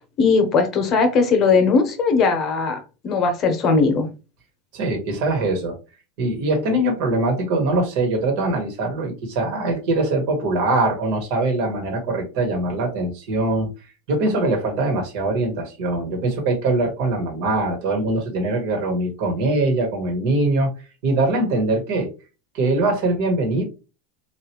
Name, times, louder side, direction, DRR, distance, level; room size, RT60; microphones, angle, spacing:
voice 1, 0.2-2.8 3.0-4.1, left 4 dB, 40° left, 1.0 m, -18 dB
voice 2, 4.7-5.7 6.2-13.7 14.1-20.7 21.0-22.1 22.5-23.6, right 2 dB, 60° right, 1.4 m, -22 dB
3.0 x 2.5 x 3.0 m
hypercardioid pair, 95°, 0 cm